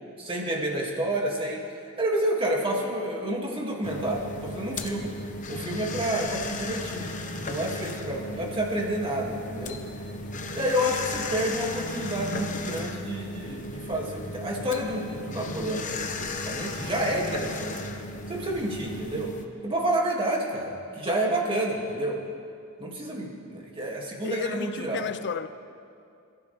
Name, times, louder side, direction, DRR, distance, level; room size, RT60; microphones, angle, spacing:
voice 1, 0.2-1.6 2.0-5.1 5.5-7.1 7.4-9.8 10.5-15.9 16.2-17.8 18.3-19.3 19.6-22.2 22.8-25.1, right 1 dB, 25° right, 2.4 m, -29 dB
sound 1, 3.8-19.5, left 2 dB, 35° left, 1.0 m, -35 dB
voice 2, 24.2-25.5, left 6 dB, 50° left, 0.5 m, -32 dB
27.5 x 14.5 x 3.5 m
head